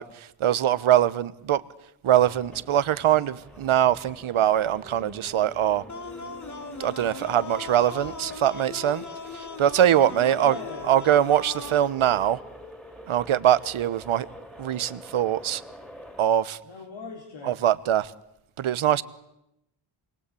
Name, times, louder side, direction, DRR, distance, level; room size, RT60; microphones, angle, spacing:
voice 1, 0.0-1.6 2.0-5.8 6.8-9.0 9.3-10.6 10.9-12.4 13.1-14.3 14.6-15.6 16.2-16.6 17.4-18.1 18.6-19.0, right 11 dB, 85° right, 1.2 m, -22 dB
sound 1, 2.1-16.2, equal, ahead, 3.5 m, -46 dB
sound 2, 5.9-11.9, left 4 dB, 35° left, 1.9 m, -39 dB
voice 2, 10.3-10.9 11.6-11.7 16.6-17.7, left 3 dB, 65° left, 3.9 m, -40 dB
28.0 x 22.0 x 8.5 m
cardioid pair, 95°, 48 cm